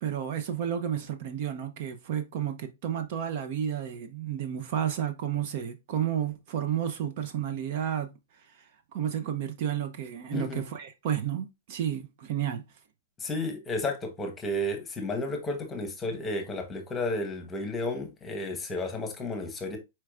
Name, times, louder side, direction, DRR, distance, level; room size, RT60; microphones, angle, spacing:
voice 1, 0.0-8.1 8.6-12.6, right 9 dB, 45° right, 0.6 m, -31 dB
voice 2, 10.3-10.6 13.2-19.8, left 2 dB, 15° left, 1.1 m, -32 dB
4.6 x 4.4 x 2.4 m
hypercardioid pair, 150°, 0 cm